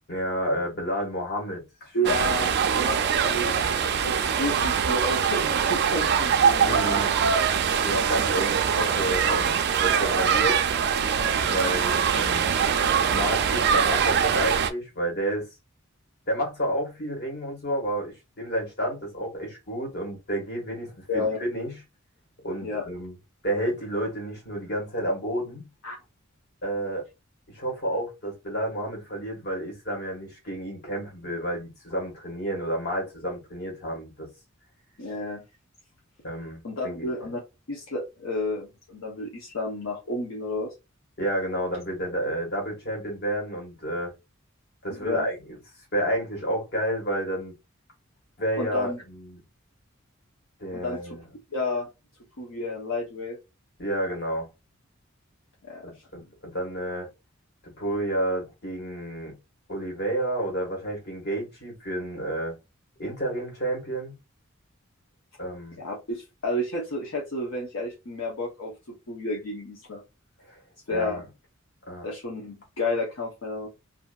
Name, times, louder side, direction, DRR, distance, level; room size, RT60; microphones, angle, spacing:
voice 1, 0.1-2.1 6.5-7.1 7.7-10.6 11.4-12.5 13.0-15.5 16.3-21.7 22.4-23.1 23.4-25.6 26.6-27.1 27.5-34.3 36.2-37.1 41.2-44.1 44.8-45.6 45.9-47.5 48.4-49.4 50.6-51.2 53.8-54.5 55.8-57.1 57.8-59.4 59.7-62.5 63.0-64.1 65.4-65.8 70.5-70.6 70.9-71.2 71.9-72.1, right 1 dB, 55° left, 1.5 m, -30 dB
voice 2, 1.9-3.5 4.0-6.8 21.1-21.4 22.6-22.8 25.8-26.0 35.0-35.4 36.6-37.4 37.7-40.7 44.9-45.3 48.6-49.0 50.7-51.2 51.5-51.9 52.4-53.4 55.7-55.8 65.8-68.7 69.1-70.0 70.9-71.2 72.0-73.7, left 1 dB, 75° left, 0.8 m, -31 dB
sound 1, 2.0-14.7, right 7 dB, 55° right, 0.4 m, -23 dB
2.7 x 2.6 x 2.2 m
head